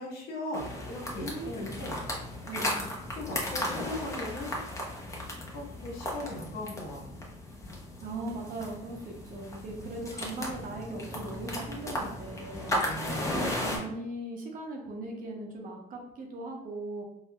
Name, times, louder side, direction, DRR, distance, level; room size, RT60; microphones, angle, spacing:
voice 1, 0.0-2.0 3.1-4.5 5.5-7.0 12.3-12.4 12.7-13.4, left 1 dB, 70° left, -2 dB, 1.1 m, -38 dB
sound 1, 0.5-13.8, left 1 dB, 20° left, 0.7 m, -36 dB
voice 2, 1.2-1.7 2.4-2.9 8.0-12.8 13.3-17.0, right 2 dB, 55° right, 1 dB, 0.8 m, -39 dB
4.2 x 2.0 x 2.2 m, 0.80 s
cardioid pair, 110°, 17 cm